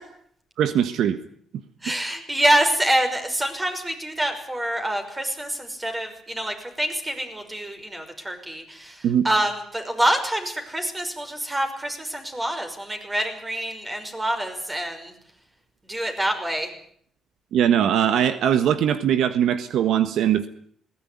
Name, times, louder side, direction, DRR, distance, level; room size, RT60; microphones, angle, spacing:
voice 1, 0.6-1.2 9.0-9.3 17.5-20.5, right 9 dB, 75° right, 11 dB, 1.4 m, -21 dB
voice 2, 1.8-15.1 15.9-16.7, right 1 dB, 15° right, 6 dB, 5.9 m, -26 dB
20.5 x 18.5 x 9.6 m, 0.64 s
cardioid pair, 90°, 0 cm